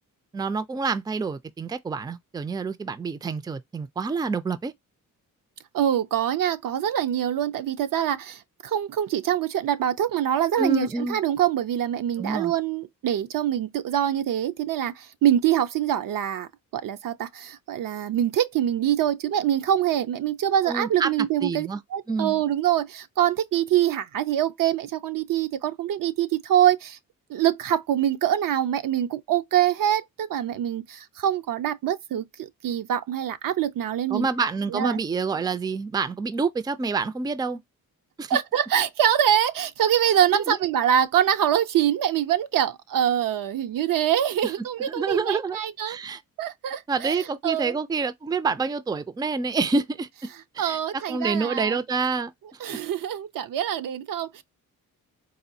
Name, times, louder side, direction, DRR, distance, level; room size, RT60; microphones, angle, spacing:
voice 1, 0.3-4.7 10.6-11.2 12.2-12.5 20.6-21.1 21.4-21.8 22.1-22.4 34.1-37.6 38.2-38.4 40.3-40.6 44.4-44.5 44.8-45.6 45.9-46.2 46.9-50.3 50.5-52.8, right 4 dB, 10° right, 0.4 m, -27 dB
voice 2, 5.7-27.0 27.3-35.0 38.3-46.0 46.4-47.8 50.3-51.8 52.6-54.4, right 10 dB, 70° right, 0.5 m, -24 dB
4.2 x 2.2 x 2.7 m
cardioid pair, 90°, 35 cm